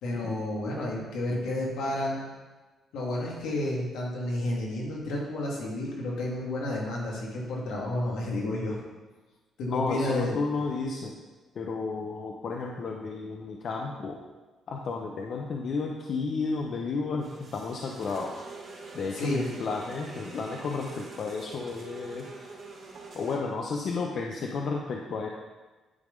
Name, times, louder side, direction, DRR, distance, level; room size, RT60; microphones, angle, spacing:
voice 1, 0.0-2.3 2.9-8.8 9.6-10.7 19.1-19.5, left 1 dB, 85° left, -3 dB, 1.9 m, -31 dB
voice 2, 9.7-11.2 11.5-14.2 14.7-18.4 18.9-22.3 23.1-25.3, left 4 dB, 60° left, 1 dB, 0.7 m, -32 dB
sound 1, 17.2-23.4, right 3 dB, 50° right, 2.7 m, -45 dB
9.7 x 3.5 x 5.2 m, 1.2 s
cardioid pair, 90°, 0 cm